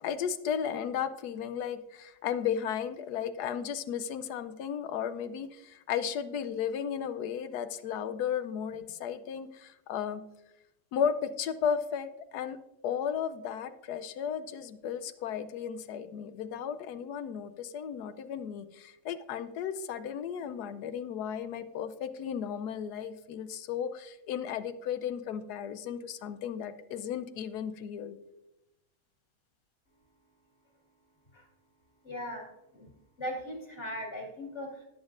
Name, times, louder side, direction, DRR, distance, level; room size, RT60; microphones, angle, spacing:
voice 1, 0.0-10.2 10.9-12.6 12.8-28.2, left 8 dB, 85° left, 11 dB, 1.2 m, -34 dB
voice 2, 32.0-32.4 32.7-32.9 33.2-34.8, equal, 45° left, -1 dB, 2.3 m, -38 dB
17.0 x 7.2 x 2.5 m, 0.94 s
omnidirectional pair, 1.7 m